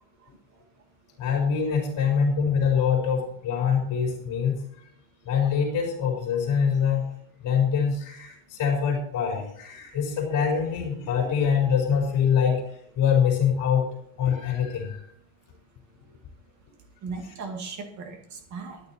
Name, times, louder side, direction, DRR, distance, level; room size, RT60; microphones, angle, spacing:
voice 1, 1.2-4.6 5.2-7.1 7.4-12.6 13.0-13.9 14.2-15.0, left 7 dB, 40° left, 0 dB, 4.2 m, -24 dB
voice 2, 11.0-11.5 12.2-12.3 17.0-18.8, right 4 dB, 35° right, 4 dB, 2.2 m, -38 dB
13.5 x 9.8 x 4.4 m, 0.70 s
cardioid pair, 180°, 48 cm